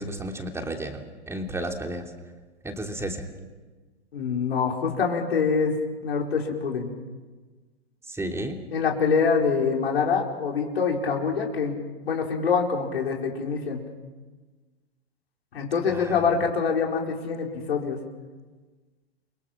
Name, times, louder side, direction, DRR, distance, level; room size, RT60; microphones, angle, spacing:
voice 1, 0.0-2.1 2.6-3.3 8.1-8.6 15.9-16.4, right 1 dB, 10° right, 3 dB, 3.0 m, -33 dB
voice 2, 4.1-5.8 6.0-6.9 8.7-11.7 12.0-13.8 15.5-18.0, left 5 dB, 75° left, 0 dB, 5.0 m, -25 dB
30.0 x 23.0 x 6.0 m, 1.3 s
hypercardioid pair, 105°, 31 cm